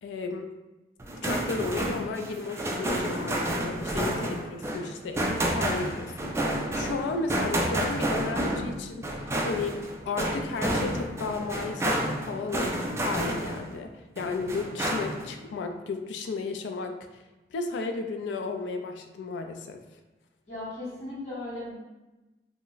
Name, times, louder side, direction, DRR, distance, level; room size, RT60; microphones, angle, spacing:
voice 1, 0.0-0.5 1.2-9.8 10.1-12.8 13.0-17.1 17.5-19.8, left 4 dB, 85° left, 5 dB, 0.3 m, -34 dB
sound 1, 1.0-13.8 14.2-15.3, right 1 dB, 15° right, 0.3 m, -30 dB
voice 2, 20.5-21.7, left 2 dB, 40° left, -9 dB, 1.2 m, -37 dB
2.4 x 2.1 x 3.7 m, 1.1 s
head